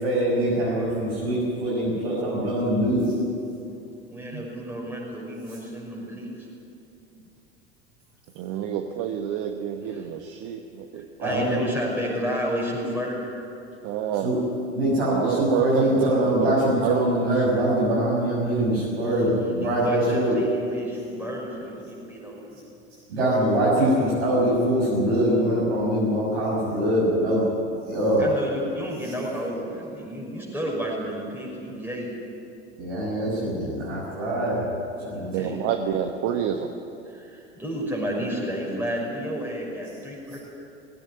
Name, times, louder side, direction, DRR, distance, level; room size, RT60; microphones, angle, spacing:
voice 1, 0.0-3.1 11.2-11.6 14.2-14.4 14.7-20.4 23.1-27.4 27.8-28.2 32.8-34.6 35.0-35.5, right 1 dB, 70° right, -7 dB, 6.7 m, -23 dB
voice 2, 4.1-6.5 9.9-10.0 10.9-13.2 19.0-22.6 28.2-32.1 34.5-34.6 35.1-35.6 37.1-40.4, equal, 5° right, -4 dB, 6.0 m, -31 dB
voice 3, 8.3-11.1 13.8-14.4 15.1-17.4 35.3-36.7, right 8 dB, 45° right, 5 dB, 1.3 m, -28 dB
20.0 x 17.0 x 9.5 m, 2.7 s
figure-of-eight pair, 75°, 33 cm